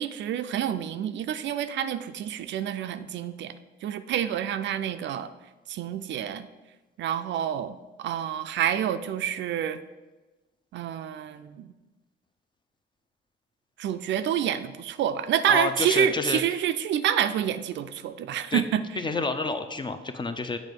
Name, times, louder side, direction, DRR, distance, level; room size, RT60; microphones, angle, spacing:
voice 1, 0.0-3.5 3.8-5.3 5.7-6.5 7.0-9.8 10.7-11.7 13.8-18.8, right 9 dB, 65° right, 10 dB, 0.4 m, -28 dB
voice 2, 15.5-16.4 18.5-18.6 18.9-20.6, left 3 dB, 25° left, 8 dB, 0.5 m, -29 dB
7.5 x 3.1 x 5.2 m, 1.2 s
cardioid pair, 90°, 20 cm